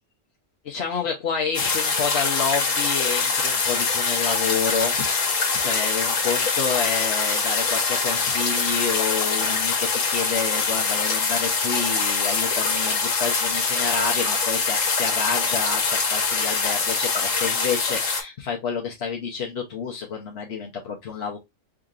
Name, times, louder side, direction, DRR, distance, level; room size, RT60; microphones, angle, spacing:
voice 1, 0.6-21.4, left 6 dB, 60° left, 0.9 m, -29 dB
sound 1, 1.5-18.2, left 4 dB, 75° left, 1.4 m, -24 dB
4.8 x 2.7 x 2.4 m
omnidirectional pair, 1.3 m